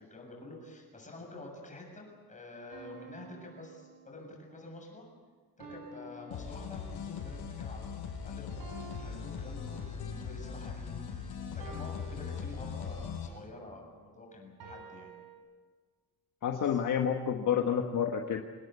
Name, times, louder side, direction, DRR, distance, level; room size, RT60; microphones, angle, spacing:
voice 1, 0.0-5.1 5.6-15.1 16.6-16.8, left 2 dB, 20° left, 1 dB, 7.2 m, -48 dB
sound 1, 2.7-4.5 5.6-7.2 8.6-10.3 11.6-13.1 14.6-15.4, right 3 dB, 65° right, 6.0 m, -51 dB
sound 2, 6.3-13.3, left 6 dB, 85° left, 6.0 m, -40 dB
voice 2, 16.4-18.4, left 8 dB, 55° left, 3 dB, 1.5 m, -29 dB
26.5 x 18.5 x 8.3 m, 1.5 s
cardioid pair, 155°, 38 cm